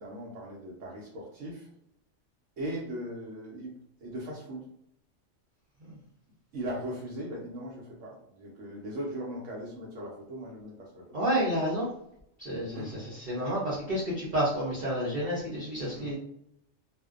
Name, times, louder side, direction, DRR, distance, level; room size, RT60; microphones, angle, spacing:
voice 1, 0.0-1.7 2.6-4.7 6.5-11.1 12.7-13.0 15.9-16.1, right 1 dB, 85° right, -4 dB, 1.0 m, -39 dB
voice 2, 11.1-11.9 12.4-16.1, equal, 50° right, -6 dB, 0.6 m, -30 dB
2.5 x 2.1 x 2.3 m, 0.74 s
omnidirectional pair, 1.3 m